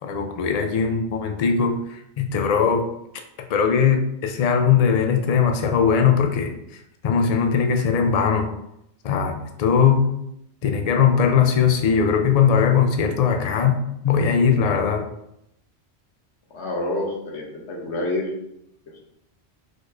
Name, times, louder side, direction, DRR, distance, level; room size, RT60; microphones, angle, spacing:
voice 1, 0.0-2.8 3.5-8.5 9.0-10.1 10.6-13.8 14.0-15.0, left 6 dB, 45° left, 4 dB, 0.5 m, -20 dB
voice 2, 16.5-18.3, left 2 dB, 90° left, -1 dB, 1.1 m, -28 dB
4.7 x 4.2 x 2.5 m, 0.80 s
omnidirectional pair, 1.1 m